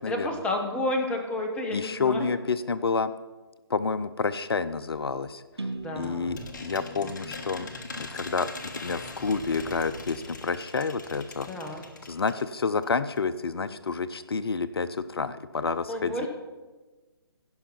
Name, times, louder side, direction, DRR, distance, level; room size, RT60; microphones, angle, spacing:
voice 1, 0.1-2.3 5.8-7.4 11.4-11.8 15.9-16.3, left 1 dB, 10° left, 3 dB, 1.2 m, -32 dB
voice 2, 1.7-3.1 3.7-5.4 6.0-8.5 8.7-11.5 12.1-16.3, left 4 dB, 70° left, 13 dB, 0.6 m, -29 dB
sound 1, 5.6-12.5 12.8-12.9 13.1-13.2, left 3 dB, 45° left, 1.4 m, -42 dB
sound 2, 5.6-9.4, right 2 dB, 85° right, 1.0 m, -42 dB
16.5 x 5.6 x 5.8 m, 1.2 s
figure-of-eight pair, 145°, 13 cm